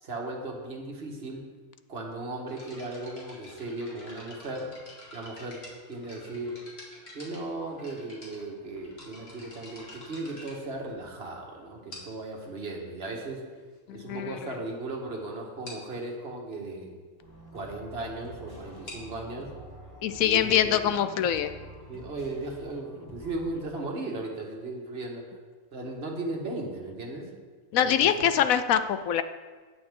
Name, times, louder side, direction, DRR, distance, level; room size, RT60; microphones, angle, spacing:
voice 1, 0.0-1.5 1.9-4.7 5.1-6.6 7.1-13.4 13.9-16.9 17.5-19.5 20.2-20.8 21.1-21.3 21.9-25.4 25.7-27.3 27.8-28.1, right 2 dB, 45° right, 0 dB, 1.8 m, -36 dB
sound 1, 2.5-11.3 11.9-12.3 13.2-13.3 13.9-14.0 14.2-14.4 14.8-14.9 15.1-15.2 15.6-15.9 18.6-22.1, left 1 dB, 45° left, 2.4 m, -49 dB
voice 2, 13.9-14.4 20.0-21.5 27.7-29.2, left 9 dB, 75° left, 11 dB, 1.0 m, -24 dB
sound 2, 17.2-23.6, equal, 15° left, 2.1 m, -47 dB
17.5 x 7.0 x 3.7 m, 1.4 s
omnidirectional pair, 1.5 m